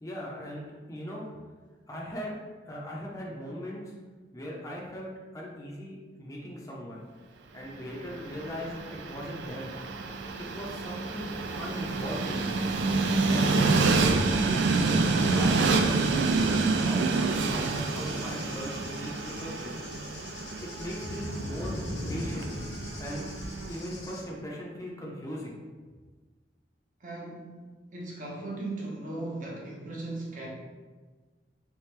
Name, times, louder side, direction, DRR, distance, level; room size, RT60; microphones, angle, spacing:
voice 1, 0.0-1.2 1.9-2.3 2.7-3.9 4.3-7.0 7.5-9.7 10.4-11.3 11.6-12.6 13.2-16.0 16.3-17.1 17.4-19.7 20.6-21.8 22.1-22.5 23.0-23.3 23.7-25.5, equal, 20° left, -3 dB, 0.6 m, -39 dB
Train, 7.9-23.9, right 3 dB, 80° right, 0.3 m, -28 dB
Cricket / Thunder, 15.2-24.2, left 1 dB, 85° left, 0.7 m, -41 dB
voice 2, 27.0-27.6 27.9-30.5, right 2 dB, 45° right, -3 dB, 0.9 m, -37 dB
3.3 x 3.3 x 3.2 m, 1.3 s
head